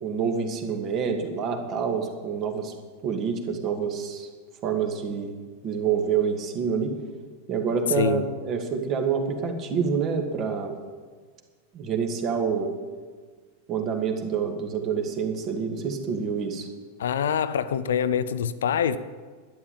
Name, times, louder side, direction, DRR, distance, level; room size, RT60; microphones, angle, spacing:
voice 1, 0.0-2.7 3.0-4.3 4.6-5.4 5.6-7.0 7.5-10.7 11.7-12.7 13.7-16.7, right 6 dB, 35° right, 2.0 m, -27 dB
voice 2, 17.0-19.0, left 8 dB, 65° left, 0.6 m, -25 dB
12.0 x 10.0 x 7.4 m
figure-of-eight pair, 90°, 0 cm